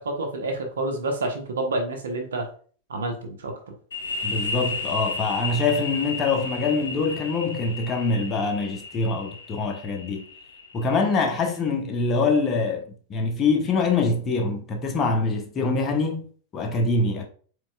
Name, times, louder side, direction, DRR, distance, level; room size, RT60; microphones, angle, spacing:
voice 1, 0.0-2.5 2.9-3.7, right 2 dB, 80° right, 1.1 m, -29 dB
sound 1, 3.9-11.4, left 3 dB, 80° left, 1.2 m, -33 dB
voice 2, 4.2-10.2 10.7-17.3, left 3 dB, 30° left, 1.1 m, -24 dB
5.1 x 4.4 x 2.4 m
hypercardioid pair, 100°, 0 cm